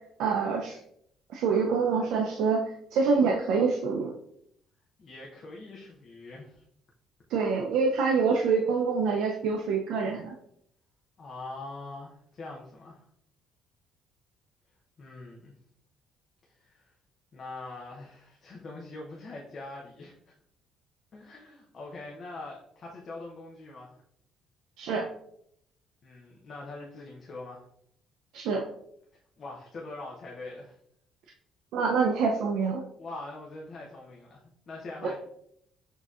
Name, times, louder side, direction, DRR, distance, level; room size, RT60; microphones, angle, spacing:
voice 1, 0.2-0.8 1.3-2.6 2.9-4.1 7.3-10.4 24.8-25.1 28.3-28.6 31.7-32.8 35.0-35.1, right 5 dB, 70° right, 1 dB, 0.4 m, -26 dB
voice 2, 5.0-6.6 11.2-13.1 15.0-15.5 16.5-16.9 17.3-20.3 21.1-23.9 26.0-27.6 29.4-30.8 33.0-35.2, left 2 dB, 35° left, -3 dB, 0.6 m, -43 dB
6.2 x 2.7 x 2.4 m, 0.71 s
cardioid pair, 170°, 0 cm